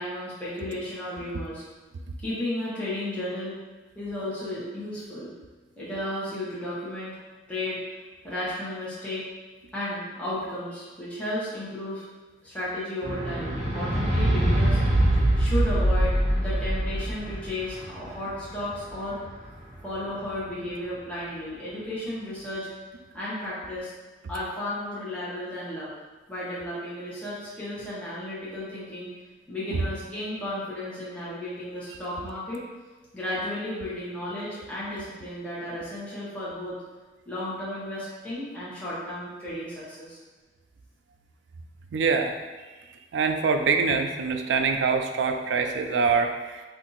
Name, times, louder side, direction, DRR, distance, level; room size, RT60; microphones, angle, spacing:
voice 1, 0.0-1.6 2.2-3.6 3.9-5.3 5.8-7.1 7.5-7.8 8.2-9.2 9.7-12.0 12.4-14.8 15.4-19.2 19.8-22.7 23.1-23.9 24.3-25.9 26.3-29.1 29.5-32.6 33.1-36.8 37.3-40.2, left 1 dB, 5° left, -10 dB, 0.9 m, -33 dB
sound 1, 13.0-19.5 20.3-20.4, right 1 dB, 40° right, 0.6 m, -24 dB
voice 2, 41.9-42.4 43.1-46.6, right 5 dB, 85° right, 5 dB, 0.4 m, -24 dB
2.6 x 2.5 x 3.9 m, 1.3 s
head